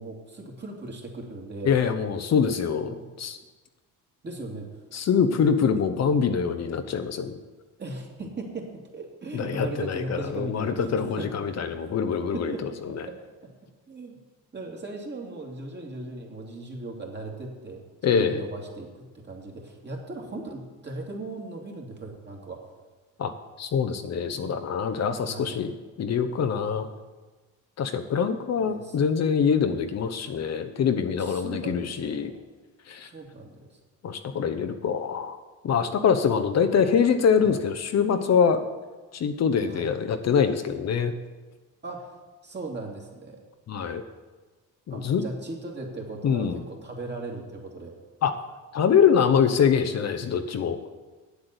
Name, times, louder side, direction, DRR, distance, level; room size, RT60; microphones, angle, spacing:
voice 1, 0.0-1.7 2.8-3.1 4.2-4.7 7.8-11.7 12.3-13.2 13.9-14.2 14.5-22.6 25.2-25.5 28.6-29.0 31.2-32.3 33.0-33.8 36.7-36.9 37.4-37.6 39.7-39.9 41.8-42.0 42.4-43.4 44.9-47.9, right 2 dB, 35° right, 0 dB, 2.6 m, -38 dB
voice 2, 1.6-3.4 4.9-7.3 9.3-13.1 18.0-18.4 23.2-25.7 26.0-26.9 27.8-32.3 32.9-33.1 34.0-35.4 35.6-38.6 39.1-41.1 43.7-44.0 44.9-45.2 46.2-46.6 48.2-48.4 48.7-50.8, left 7 dB, 50° left, 8 dB, 0.9 m, -24 dB
8.6 x 8.1 x 8.0 m, 1.3 s
cardioid pair, 95°, 33 cm